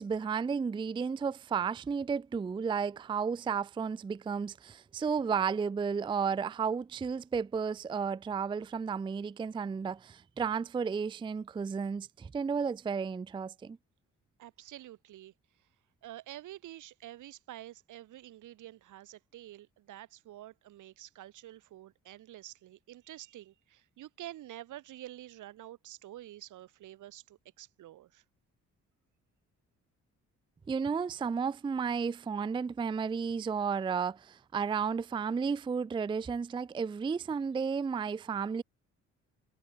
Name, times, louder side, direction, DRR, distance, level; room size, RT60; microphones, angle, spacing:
voice 1, 0.0-13.8 30.7-38.6, right 6 dB, 15° right, 0.4 m, -33 dB
voice 2, 14.4-15.7 16.0-28.2, right 14 dB, 80° right, 3.7 m, -48 dB
cardioid pair, 90°, 30 cm